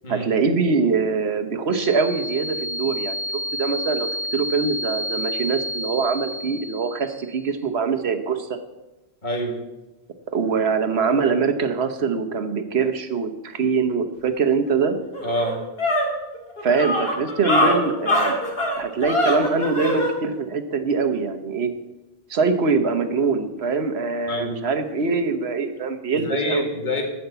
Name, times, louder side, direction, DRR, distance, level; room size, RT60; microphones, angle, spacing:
voice 1, 0.1-3.2 3.5-8.5 10.3-15.0 16.6-18.3 18.8-21.7 22.3-26.7, right 5 dB, 85° right, 7 dB, 1.3 m, -23 dB
sound 1, 1.7-7.4, left 1 dB, 20° right, 2.0 m, -30 dB
voice 2, 9.2-9.6 15.2-15.6 24.3-24.6 26.1-27.0, left 1 dB, 50° left, 2 dB, 2.1 m, -26 dB
sound 2, 14.7-14.8 15.1-20.1, left 1 dB, 70° left, 2.3 m, -23 dB
12.5 x 5.8 x 8.0 m, 1.0 s
omnidirectional pair, 1.0 m